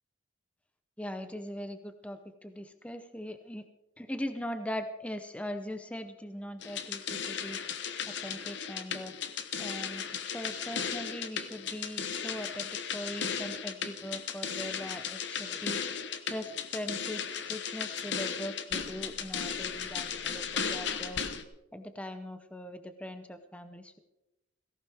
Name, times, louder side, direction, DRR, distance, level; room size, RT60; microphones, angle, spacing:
voice 1, 1.0-3.6 4.0-7.6 8.1-9.1 9.6-10.0 10.3-15.8 16.3-21.3 21.7-24.0, equal, 5° left, 8 dB, 0.7 m, -40 dB
sound 1, 6.6-21.4, left 7 dB, 60° left, 1.0 m, -36 dB
17.5 x 17.0 x 3.5 m, 0.94 s
head